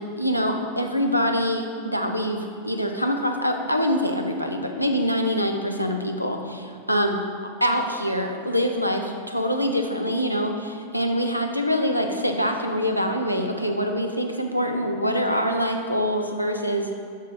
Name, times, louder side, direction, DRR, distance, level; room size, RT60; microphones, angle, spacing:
voice 1, 0.0-7.2 7.6-16.9, equal, 90° left, 4 dB, 0.7 m, -25 dB
8.3 x 6.5 x 3.9 m, 2.4 s
figure-of-eight pair, 90°, 0 cm